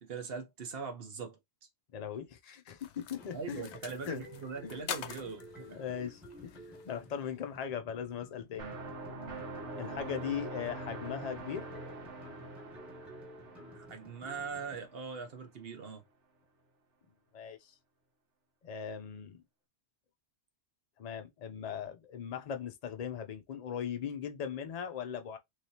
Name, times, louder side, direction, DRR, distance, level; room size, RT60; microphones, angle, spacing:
voice 1, 0.0-1.4 3.3-5.8 13.7-16.0, right 5 dB, 60° right, 1.0 m, -41 dB
voice 2, 1.9-3.7 4.1-4.3 4.6-5.3 5.7-8.7 9.2-9.3 9.8-11.7 17.3-17.7 18.6-19.4 21.0-25.4, left 8 dB, 50° left, 0.5 m, -39 dB
sound 1, 2.8-7.5, left 9 dB, 75° left, 0.9 m, -46 dB
sound 2, 3.2-14.8, equal, ahead, 1.2 m, -53 dB
sound 3, 8.6-15.3, right 2 dB, 85° right, 1.4 m, -44 dB
3.3 x 3.2 x 2.8 m
omnidirectional pair, 1.2 m